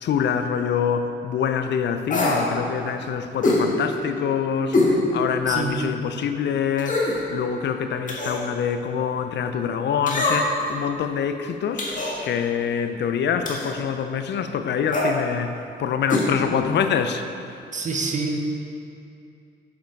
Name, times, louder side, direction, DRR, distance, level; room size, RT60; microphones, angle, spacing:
voice 1, 0.0-7.0 7.3-11.9 12.2-17.3, left 7 dB, 60° left, 8 dB, 0.5 m, -25 dB
sound 1, 2.1-2.4 3.4-3.6 4.7-4.9 5.4-5.5 6.8-7.2 8.1-8.4 10.1-10.6 11.8-12.1 13.4-13.7 14.9-15.1 16.1-16.3 16.5-16.6, left 2 dB, 40° left, 1.9 m, -22 dB
voice 2, 5.5-5.9 17.7-18.4, right 3 dB, 40° right, 3 dB, 1.0 m, -26 dB
7.5 x 7.2 x 4.6 m, 2.6 s
cardioid pair, 90°, 20 cm